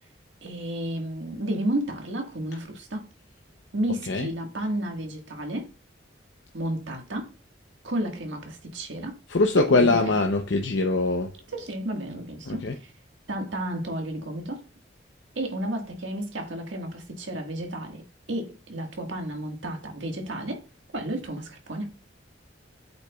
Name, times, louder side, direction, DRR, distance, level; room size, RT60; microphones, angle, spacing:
voice 1, 0.4-3.1 3.7-5.7 6.5-7.3 7.8-9.2 9.6-10.0 11.5-12.9 13.3-14.6 15.4-18.0 18.3-20.6 20.9-21.9, right 1 dB, 85° right, 1.7 m, -32 dB
voice 2, 9.3-11.3 12.5-12.8, left 3 dB, 80° left, 0.7 m, -22 dB
8.1 x 6.7 x 2.4 m
head